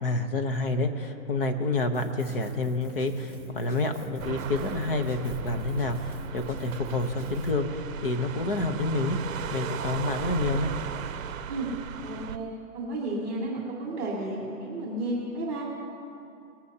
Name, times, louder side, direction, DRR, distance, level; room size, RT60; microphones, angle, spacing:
voice 1, 0.0-9.2 9.5-10.7, left 2 dB, 40° left, 7 dB, 0.8 m, -28 dB
Drum kit, 1.9-7.5, right 2 dB, 10° left, 0.8 m, -45 dB
sound 1, 4.2-12.4, right 7 dB, 65° right, 0.7 m, -36 dB
voice 2, 12.0-12.5 12.7-15.6, right 2 dB, 10° right, -12 dB, 2.0 m, -32 dB
21.0 x 14.0 x 2.8 m, 2.7 s
hypercardioid pair, 170°, 43 cm